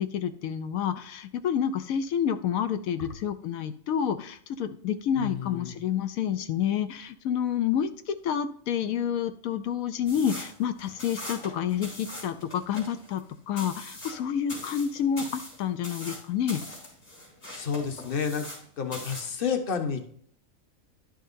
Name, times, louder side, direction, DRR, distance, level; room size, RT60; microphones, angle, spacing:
voice 1, 0.0-13.2 13.5-16.6, left 8 dB, 85° left, 9 dB, 1.0 m, -29 dB
voice 2, 5.1-5.7 17.5-18.5 18.8-20.2, left 6 dB, 45° left, 5 dB, 1.2 m, -30 dB
sound 1, 10.1-18.7 18.9-19.4, left 1 dB, 70° left, 3.9 m, -41 dB
11.0 x 6.4 x 2.6 m, 0.62 s
omnidirectional pair, 1.4 m